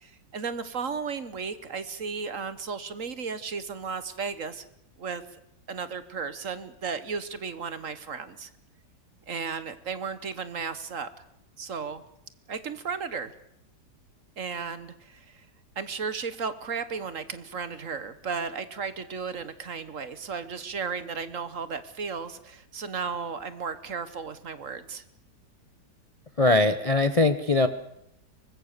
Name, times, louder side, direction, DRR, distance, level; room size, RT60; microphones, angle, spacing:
voice 1, 0.0-4.7 5.0-5.2 5.7-8.5 9.3-11.1 11.6-12.0 12.5-13.3 14.4-15.5 15.8-25.0, right 5 dB, 50° right, 13 dB, 1.4 m, -34 dB
voice 2, 26.4-27.7, left 2 dB, 30° left, 11 dB, 0.6 m, -21 dB
24.0 x 20.5 x 6.7 m, 0.78 s
omnidirectional pair, 1.9 m